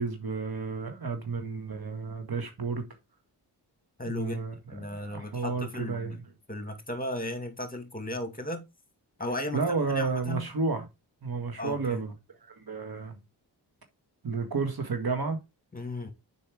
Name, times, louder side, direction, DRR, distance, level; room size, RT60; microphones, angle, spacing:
voice 1, 0.0-2.9 4.1-6.2 9.5-10.9 11.2-12.1 12.4-13.2 14.2-15.4, right 4 dB, 55° right, 1.8 m, -31 dB
voice 2, 4.0-4.4 4.7-6.2 6.5-8.7 9.2-9.6 9.9-10.5 11.6-12.0 15.7-16.1, left 1 dB, 20° left, 2.4 m, -35 dB
6.9 x 5.4 x 4.8 m
cardioid pair, 50°, 43 cm